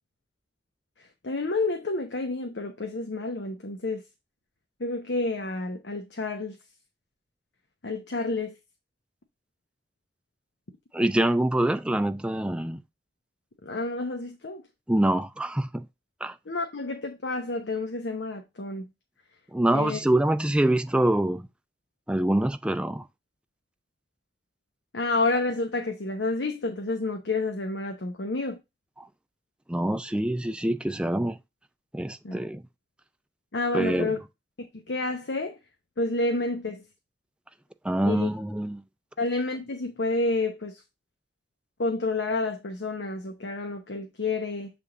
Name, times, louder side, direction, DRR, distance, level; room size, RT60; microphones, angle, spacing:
voice 1, 1.2-4.0 4.8-6.6 7.8-8.6 13.6-14.6 16.5-18.9 19.7-20.0 24.9-28.6 32.2-32.4 33.5-34.2 34.6-35.6 36.0-36.8 38.0-38.3 39.2-40.8 41.8-44.7, left 3 dB, 85° left, 0.9 m, -29 dB
voice 2, 10.9-12.8 14.9-15.9 16.2-16.4 19.5-21.5 22.1-23.1 29.0-29.1 29.7-31.4 31.9-32.6 33.7-34.1 37.8-38.8, right 1 dB, 5° right, 0.3 m, -25 dB
7.2 x 3.5 x 3.9 m
head